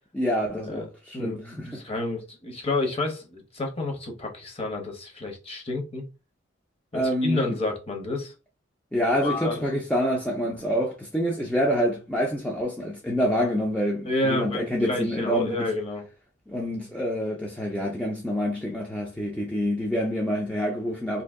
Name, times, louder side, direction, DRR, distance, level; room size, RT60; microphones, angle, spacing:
voice 1, 0.1-1.7 6.9-7.6 8.9-15.6 16.5-21.2, equal, 5° left, 0.4 m, -27 dB
voice 2, 1.1-6.0 6.9-8.3 9.2-9.8 14.1-16.1, left 2 dB, 30° left, 0.8 m, -30 dB
2.7 x 2.7 x 3.5 m
head